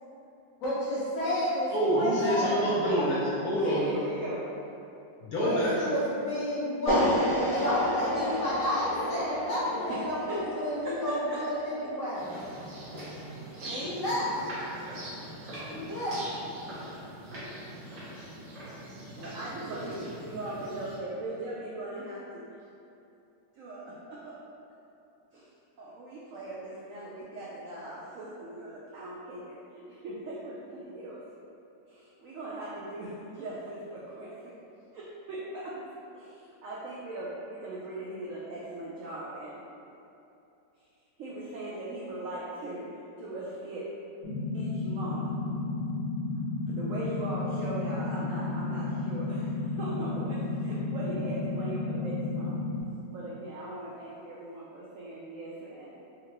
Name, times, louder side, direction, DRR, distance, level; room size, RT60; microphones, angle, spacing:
voice 1, 0.6-2.6 5.4-7.1 7.4-12.2 13.6-14.3 15.7-16.1 19.7-19.8, equal, 55° left, -9 dB, 1.2 m, -31 dB
voice 2, 1.7-3.9 5.2-5.7, equal, 70° left, -7 dB, 1.0 m, -26 dB
voice 3, 3.6-4.5 9.9-10.0 10.3-10.4 11.3-11.4 19.2-22.4 23.5-24.4 25.3-25.5 25.8-31.2 31.9-34.5 34.9-35.8 36.1-39.6 41.2-42.9 43.2-43.9 44.5-45.3 46.7-52.6 53.1-56.0, right 2 dB, 75° right, -6 dB, 0.7 m, -39 dB
sound 1, 6.9-13.0, left 1 dB, 5° left, 1.2 m, -31 dB
sound 2, 12.1-21.0, right 1 dB, 55° right, 1.3 m, -42 dB
sound 3, 44.2-52.8, left 3 dB, 30° right, 0.6 m, -32 dB
3.8 x 3.3 x 2.9 m, 2.7 s
omnidirectional pair, 1.9 m